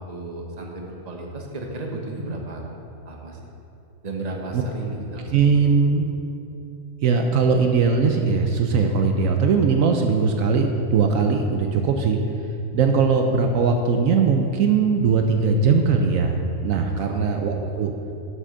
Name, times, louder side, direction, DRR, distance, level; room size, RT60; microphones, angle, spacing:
voice 1, 0.1-2.6 3.0-3.5 4.0-5.8 17.0-17.2 17.6-17.9, right 2 dB, 30° right, 1 dB, 1.0 m, -34 dB
voice 2, 5.3-6.1 7.0-12.2 12.7-17.9, right 5 dB, 75° right, 4 dB, 1.0 m, -20 dB
7.7 x 6.3 x 6.5 m, 2.7 s
omnidirectional pair, 1.5 m